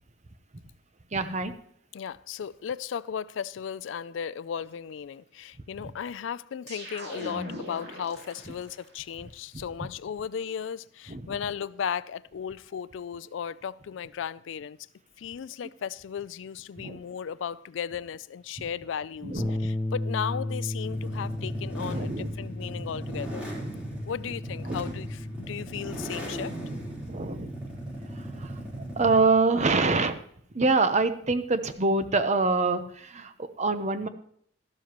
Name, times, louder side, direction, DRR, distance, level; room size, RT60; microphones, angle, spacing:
voice 1, 1.1-1.5 9.5-9.6 11.1-11.2 16.8-17.0 19.2-19.7 21.8-22.3 24.7-24.9 27.1-27.5 28.1-28.6 29.0-30.2 30.5-34.1, right 3 dB, 40° right, 0.8 m, -25 dB
voice 2, 1.9-14.8 15.2-23.4 24.0-26.5, left 7 dB, 80° left, 0.4 m, -35 dB
sound 1, 6.7-8.9, equal, 60° right, 3.1 m, -40 dB
Bass guitar, 19.4-25.6, left 1 dB, 10° left, 0.4 m, -34 dB
sound 2, 20.8-29.3, right 1 dB, 5° right, 3.8 m, -38 dB
13.0 x 12.0 x 3.0 m
head